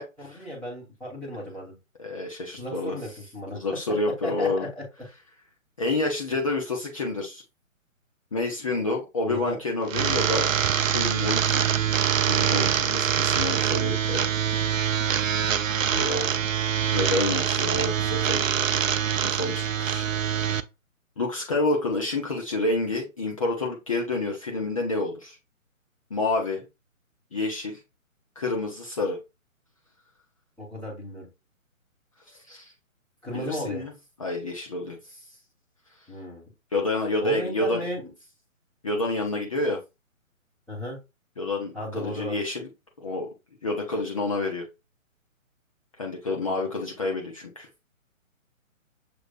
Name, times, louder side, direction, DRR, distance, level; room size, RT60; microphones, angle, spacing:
voice 1, 0.2-1.8 2.5-3.6 4.2-4.8 9.2-9.6 15.9-16.4 30.6-31.3 33.2-33.8 36.1-36.5 37.2-38.1 40.7-41.0 41.7-42.4 46.3-46.6, equal, 5° left, -11 dB, 1.1 m, -35 dB
voice 2, 2.0-3.0 3.5-4.7 5.8-7.4 8.3-10.5 10.9-11.7 12.3-14.3 15.9-16.3 16.9-18.7 19.2-20.1 21.2-25.4 26.1-26.6 27.3-27.8 28.4-29.2 32.3-32.7 33.3-33.9 34.2-35.0 36.7-37.8 38.8-39.8 41.4-42.7 43.0-43.3 43.6-44.7 46.0-47.7, left 2 dB, 25° left, 0 dB, 0.6 m, -28 dB
sound 1, 9.9-20.6, right 8 dB, 70° right, 0.6 m, -24 dB
6.7 x 3.1 x 2.4 m, 0.25 s
figure-of-eight pair, 140°, 41 cm